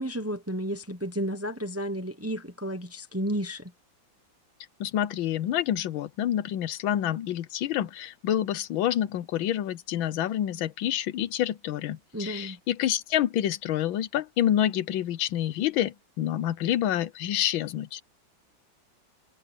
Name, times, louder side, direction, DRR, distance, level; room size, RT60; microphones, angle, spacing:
voice 1, 0.0-3.7 12.1-12.6, equal, 10° right, 0.7 m, -32 dB
voice 2, 4.8-18.0, left 11 dB, 85° left, 1.6 m, -28 dB
omnidirectional pair, 2.1 m